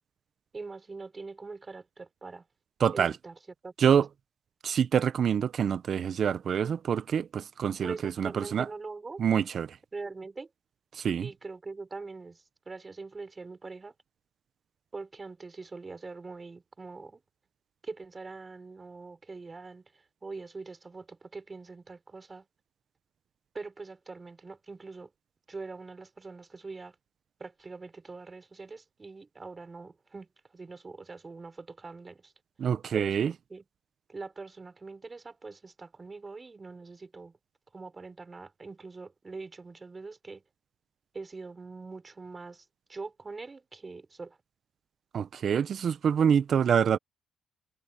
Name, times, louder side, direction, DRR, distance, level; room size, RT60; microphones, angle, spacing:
voice 1, 0.5-2.4 2.9-3.4 3.6-3.9 7.8-9.2 9.9-10.5 11.2-13.9 14.9-17.2 17.8-19.9 20.2-22.5 23.5-25.1 25.5-26.9 27.4-32.3 32.9-33.6 34.1-37.4 37.7-40.4 41.1-44.4, right 3 dB, 25° right, 6.4 m, -43 dB
voice 2, 2.8-3.1 3.8-4.1 4.6-8.7 9.2-9.8 10.9-11.3 32.6-33.3 45.1-47.0, right 8 dB, 55° right, 0.7 m, -26 dB
cardioid pair, 90°, 0 cm